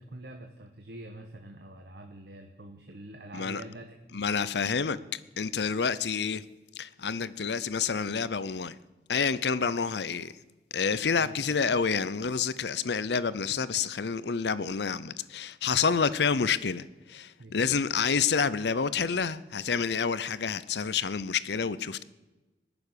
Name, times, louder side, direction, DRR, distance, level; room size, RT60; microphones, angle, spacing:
voice 1, 0.0-4.3 11.2-11.4 17.4-17.6, right 1 dB, 70° right, 1.3 m, -46 dB
voice 2, 4.1-5.0 5.4-6.4 6.8-8.8 9.1-10.3 10.7-22.0, left 6 dB, 75° left, 0.6 m, -28 dB
19.5 x 7.1 x 9.8 m
head